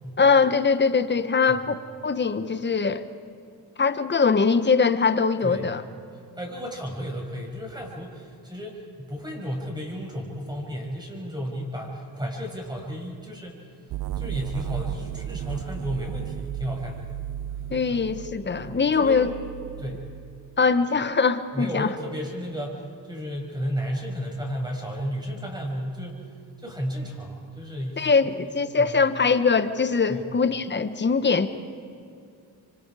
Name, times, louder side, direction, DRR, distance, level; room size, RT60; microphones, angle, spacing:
voice 1, 0.2-3.0 3.8-5.8 17.7-19.3 20.6-21.9 28.0-31.5, left 5 dB, 25° left, 11 dB, 1.1 m, -22 dB
voice 2, 6.4-13.7 14.2-17.1 17.9-18.1 18.6-19.3 19.8-20.0 21.5-26.3 26.6-28.1 28.8-29.0 30.1-30.2, equal, 10° right, 0 dB, 6.1 m, -33 dB
sound 1, 13.9-20.7, right 11 dB, 65° right, 0.7 m, -35 dB
26.0 x 25.0 x 4.9 m, 2.4 s
cardioid pair, 90°, 40 cm